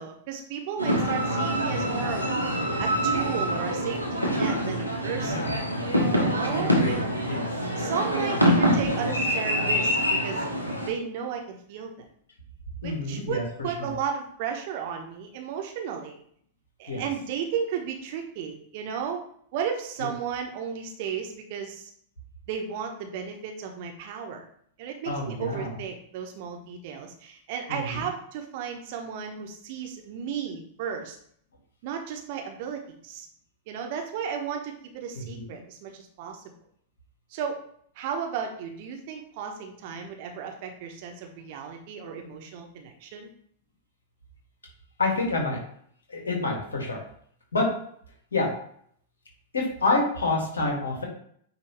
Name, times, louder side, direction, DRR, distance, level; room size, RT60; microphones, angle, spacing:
voice 1, 0.0-2.3 2.8-5.5 6.1-7.0 7.3-10.4 10.8-11.9 12.8-16.2 16.8-19.2 19.5-21.9 22.5-24.4 24.8-31.2 31.8-33.3 33.7-36.4 37.3-37.6 37.9-43.3, right 7 dB, 45° right, 3 dB, 1.2 m, -34 dB
sound 1, 0.8-10.9, equal, 90° left, 1.4 m, -25 dB
voice 2, 5.1-5.8 6.5-7.6 12.8-13.4 13.8-13.9 16.9-17.0 20.0-20.1 25.0-25.7 27.7-28.0 35.1-35.6 45.0-45.6 46.1-47.0 47.5-47.7 48.3-48.5 49.5-51.0, left 2 dB, 70° left, -1 dB, 2.3 m, -28 dB
9.2 x 3.3 x 3.4 m, 0.64 s
figure-of-eight pair, 95°, 0 cm